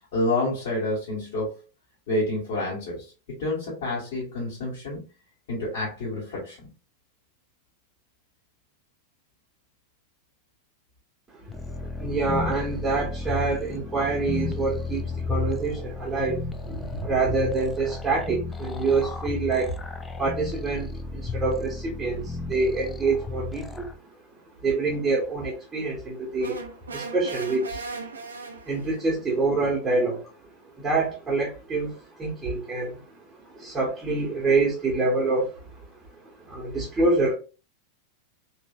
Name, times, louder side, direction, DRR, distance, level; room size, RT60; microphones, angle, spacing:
voice 1, 0.1-1.6 2.1-3.0 3.4-5.0 5.5-6.6, left 1 dB, 55° left, -7 dB, 1.5 m, -28 dB
sound 1, 11.5-24.0, left 3 dB, 15° left, 0.3 m, -33 dB
voice 2, 11.8-19.8 20.2-23.9 24.6-26.6 26.9-27.8 28.6-30.3 30.8-33.0 33.4-35.9 36.4-37.3, right 3 dB, 15° right, -4 dB, 0.9 m, -26 dB
sound 2, 26.4-29.0, right 3 dB, 70° right, 0.5 m, -37 dB
3.1 x 2.7 x 2.3 m, 0.32 s
figure-of-eight pair, 90°, 0 cm